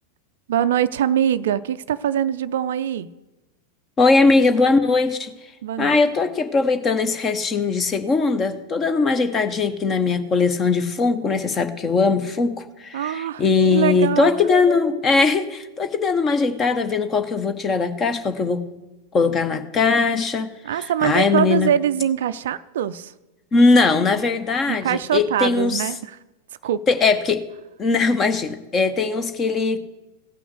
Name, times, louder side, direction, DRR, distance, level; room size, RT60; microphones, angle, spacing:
voice 1, 0.5-3.1 5.6-6.0 12.9-13.4 13.7-14.3 20.6-23.1 24.7-26.2 26.6-26.8, right 10 dB, 60° right, 15 dB, 0.4 m, -23 dB
voice 2, 4.0-5.3 5.8-18.6 19.1-20.5 21.0-21.7 23.5-25.8 26.9-27.5 27.8-29.8, left 4 dB, 25° left, 9 dB, 1.0 m, -20 dB
15.5 x 6.1 x 7.9 m, 1.0 s
figure-of-eight pair, 90°, 0 cm